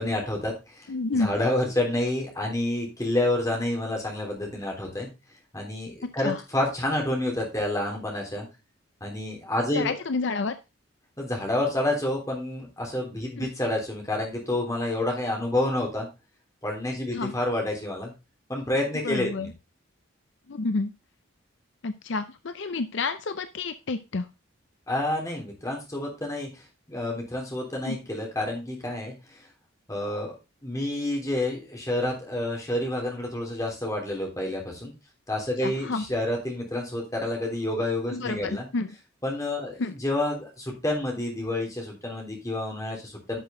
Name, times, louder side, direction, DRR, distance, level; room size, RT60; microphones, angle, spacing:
voice 1, 0.0-0.9 1.1-5.1 5.5-8.5 9.0-9.9 11.2-16.1 16.6-18.1 18.5-19.5 24.9-26.5 26.9-29.1 29.9-30.3 30.6-34.9 35.3-38.6 39.2-43.4, left 1 dB, 15° left, 0 dB, 3.3 m, -29 dB
voice 2, 0.9-1.3 6.2-6.4 9.7-10.6 13.4-13.5 17.1-17.4 19.0-19.5 20.5-20.9 21.8-24.3 27.8-28.0 35.6-36.0 38.1-38.9 39.8-39.9, left 3 dB, 60° left, 10 dB, 0.6 m, -29 dB
11.0 x 6.2 x 3.7 m, 0.26 s
head